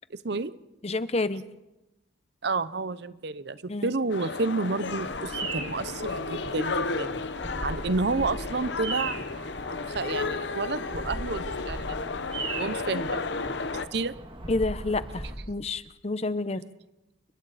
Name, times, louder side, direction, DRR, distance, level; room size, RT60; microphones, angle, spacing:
voice 1, 0.1-0.5 2.4-7.2 7.6-9.2 9.9-12.0 12.6-13.2 13.7-14.1, right 3 dB, 60° right, 15 dB, 0.7 m, -30 dB
voice 2, 0.8-1.4 3.7-3.9 14.5-16.6, left 2 dB, 35° left, 14 dB, 0.8 m, -29 dB
sound 1, 4.1-13.9, left 4 dB, 70° left, 0.9 m, -33 dB
Bird vocalization bird call bird song, 4.8-15.4, right 2 dB, 30° right, 2.0 m, -38 dB
29.5 x 22.5 x 4.2 m, 0.97 s
head